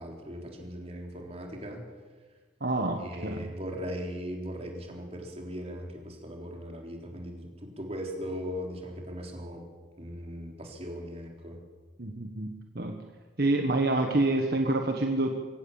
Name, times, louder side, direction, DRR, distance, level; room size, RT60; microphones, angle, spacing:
voice 1, 0.0-1.8 3.0-9.6 10.0-11.6, equal, 35° right, 1 dB, 3.8 m, -39 dB
voice 2, 2.6-3.5 12.0-13.0 13.4-15.3, right 2 dB, 55° right, 3 dB, 1.5 m, -27 dB
23.5 x 17.5 x 7.3 m, 1.4 s
head